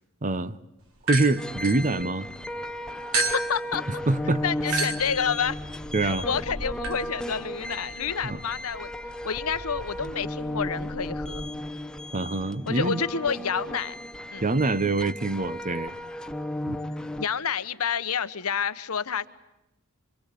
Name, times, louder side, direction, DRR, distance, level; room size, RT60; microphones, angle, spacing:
voice 1, 0.2-0.6 1.1-2.3 4.1-4.4 4.7-4.9 5.9-6.3 8.2-8.4 12.1-13.0 14.4-15.9 16.7-16.8, right 2 dB, 35° right, 0.9 m, -25 dB
sound 1, 1.0-2.5 3.1-11.4, right 2 dB, 70° right, 3.5 m, -35 dB
sound 2, 1.4-17.3, left 1 dB, 5° left, 1.0 m, -35 dB
voice 2, 3.2-3.8 4.4-5.6 6.0-8.9 9.2-11.4 12.7-13.9 14.3-14.4 17.2-19.3, left 6 dB, 75° left, 1.1 m, -29 dB
26.5 x 24.5 x 8.5 m
head